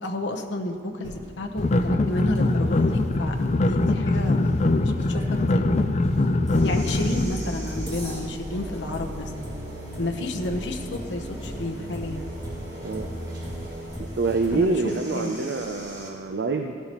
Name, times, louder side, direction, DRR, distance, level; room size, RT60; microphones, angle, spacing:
voice 1, 0.0-3.3 3.6-4.5 4.8-5.2 5.5-5.7 6.6-9.3 10.0-12.2 14.5-14.7 15.1-15.3, left 1 dB, 75° left, 3 dB, 0.9 m, -31 dB
sound 1, 1.0-16.1, equal, 20° right, 2.4 m, -40 dB
sound 2, 1.6-7.2, left 2 dB, 40° left, 0.4 m, -22 dB
sound 3, 6.5-13.9, right 1 dB, 50° right, 1.4 m, -37 dB
voice 2, 14.2-16.7, right 3 dB, 65° right, 5 dB, 0.5 m, -26 dB
16.5 x 10.0 x 3.0 m, 2.2 s
head